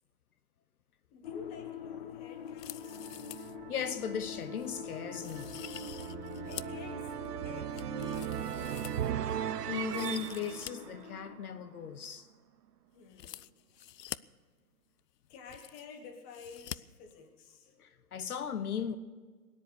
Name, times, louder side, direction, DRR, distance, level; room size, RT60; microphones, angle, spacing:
voice 1, 1.1-3.0 6.5-7.1 7.4-9.2 12.9-13.5 15.3-17.7, left 4 dB, 20° left, 1.3 m, -50 dB
sound 1, 1.2-11.4, left 8 dB, 35° left, 0.6 m, -46 dB
sound 2, 2.5-3.6 3.9-4.0 4.6-4.7 5.2-6.8 7.2-9.4 9.7-10.7 11.0-11.1 13.1-14.2 15.0-15.1 15.3-16.0 16.3-16.8 17.1-17.2, left 12 dB, 80° left, 0.6 m, -46 dB
sound 3, 2.8-11.9, right 10 dB, 75° right, 0.8 m, -39 dB
voice 2, 3.7-5.9 9.7-12.3 17.8-19.0, left 8 dB, 65° left, 1.0 m, -37 dB
19.0 x 10.5 x 6.7 m
hypercardioid pair, 150°, 48 cm